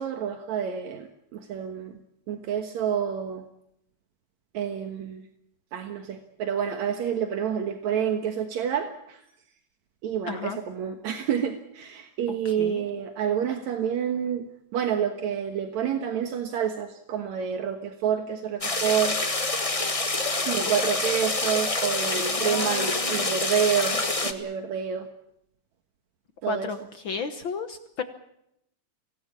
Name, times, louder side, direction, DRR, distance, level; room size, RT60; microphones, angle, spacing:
voice 1, 0.0-1.9 2.3-3.4 4.5-5.3 5.7-9.2 10.0-14.5 14.7-19.2 20.4-25.1 26.4-26.7, right 8 dB, 75° right, 6 dB, 2.7 m, -28 dB
voice 2, 10.3-10.6 12.3-12.8 22.0-23.3 26.5-26.8 27.0-28.0, left 5 dB, 55° left, 8 dB, 1.6 m, -34 dB
sound 1, 18.6-24.3, left 3 dB, 25° left, 0.7 m, -27 dB
25.5 x 18.0 x 8.6 m, 0.79 s
omnidirectional pair, 3.3 m